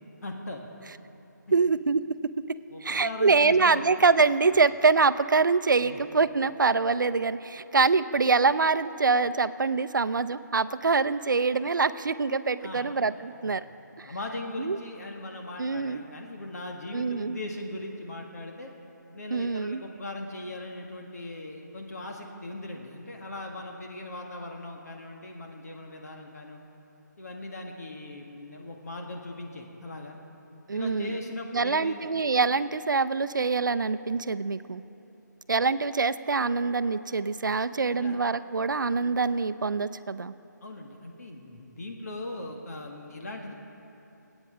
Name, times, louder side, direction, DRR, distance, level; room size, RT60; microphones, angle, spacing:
voice 1, 0.2-0.7 2.7-3.8 5.8-6.0 12.6-12.9 13.4-13.5 14.0-18.7 19.1-26.6 27.2-30.2 30.7-32.1 37.9-38.2 40.6-43.5, left 2 dB, 55° left, 1 dB, 1.7 m, -39 dB
voice 2, 1.5-2.3 2.8-13.6 14.0-14.1 14.6-14.8 15.6-16.0 16.9-17.4 19.3-19.8 30.7-31.2 31.5-34.8 35.5-40.3, right 4 dB, 90° right, 13 dB, 0.6 m, -25 dB
24.0 x 9.0 x 5.0 m, 3.0 s
hypercardioid pair, 170°, 10 cm